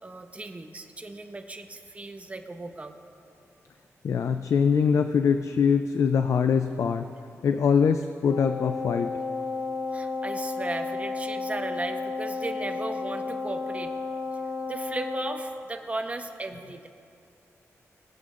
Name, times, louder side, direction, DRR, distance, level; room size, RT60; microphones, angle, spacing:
voice 1, 0.0-2.9 9.9-13.9 14.7-16.9, right 2 dB, 25° right, 6 dB, 0.8 m, -36 dB
voice 2, 4.0-7.1 7.4-9.1, left 6 dB, 70° left, 8 dB, 0.4 m, -23 dB
Wind instrument woodwind instrument, 8.3-15.6, left 4 dB, 55° left, 0.8 m, -32 dB
20.5 x 8.3 x 2.5 m, 2.6 s
cardioid pair, 90°, 5 cm